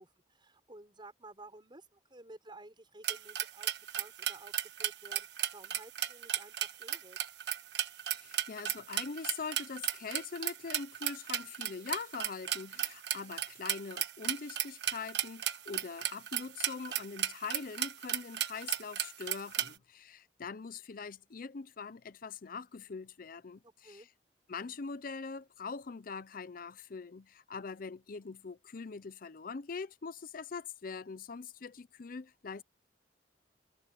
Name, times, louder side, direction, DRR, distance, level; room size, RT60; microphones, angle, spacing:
voice 1, 0.0-7.2 19.6-19.9 23.6-24.1, right 2 dB, 25° right, 5.7 m, -54 dB
sound 1, 3.0-19.7, right 11 dB, 75° right, 1.2 m, -35 dB
voice 2, 8.1-24.1 24.5-32.6, left 5 dB, 55° left, 0.6 m, -43 dB
head